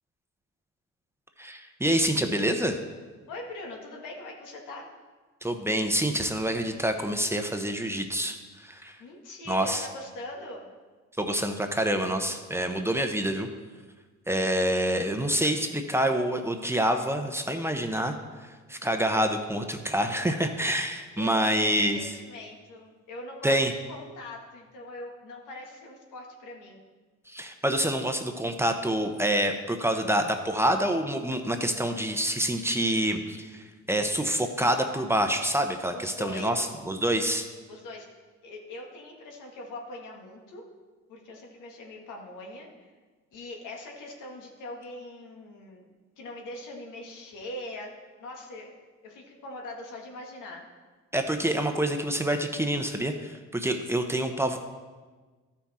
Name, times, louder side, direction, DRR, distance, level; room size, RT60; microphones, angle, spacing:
voice 1, 1.4-2.8 5.4-9.0 9.5-9.9 11.2-13.5 14.3-22.1 23.4-23.7 27.3-37.5 51.1-54.6, right 1 dB, 10° right, 5 dB, 0.8 m, -27 dB
voice 2, 3.3-4.9 9.0-10.7 21.2-26.8 35.9-36.7 37.7-38.1 38.4-40.6 41.1-42.9 43.3-45.9 46.2-47.9 48.2-48.7 49.0-50.7, left 1 dB, 90° left, 0 dB, 1.8 m, -42 dB
13.0 x 6.0 x 4.2 m, 1.4 s
cardioid pair, 90°, 30 cm